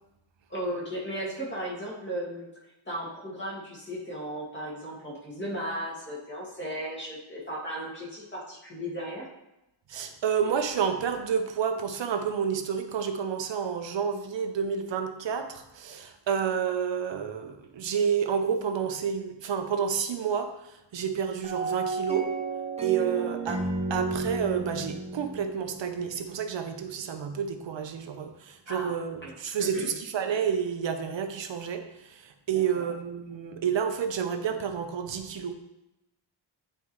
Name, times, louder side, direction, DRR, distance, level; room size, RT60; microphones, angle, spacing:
voice 1, 0.5-2.5 2.9-9.3 23.1-23.3 28.7-29.3 29.6-30.0 32.5-32.9, equal, 25° left, -5 dB, 2.2 m, -36 dB
voice 2, 9.9-20.5 20.9-22.3 22.8-23.6 23.9-35.5, right 7 dB, 70° right, 6 dB, 0.8 m, -29 dB
sound 1, 21.4-26.6, right 3 dB, 15° right, 0.9 m, -33 dB
9.3 x 4.5 x 3.1 m, 0.92 s
wide cardioid pair, 145°, 46 cm